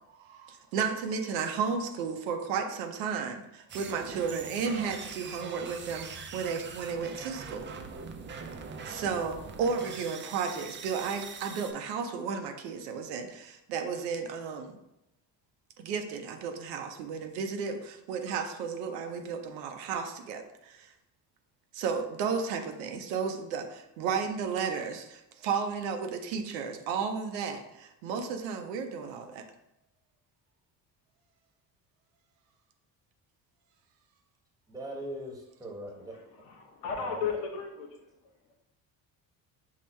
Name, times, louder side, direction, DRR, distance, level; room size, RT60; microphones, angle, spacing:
voice 1, 0.2-7.7 8.8-14.8 15.8-20.9 21.7-29.4, right 6 dB, 85° right, 5 dB, 0.6 m, -33 dB
sound 1, 3.7-11.7, right 5 dB, 25° right, 0.4 m, -43 dB
voice 2, 34.7-36.1 37.0-37.2, right 1 dB, 10° right, -1 dB, 1.3 m, -40 dB
voice 3, 36.0-38.3, left 6 dB, 80° left, 2 dB, 0.9 m, -36 dB
5.4 x 2.2 x 3.1 m, 0.86 s
hypercardioid pair, 60°, 49 cm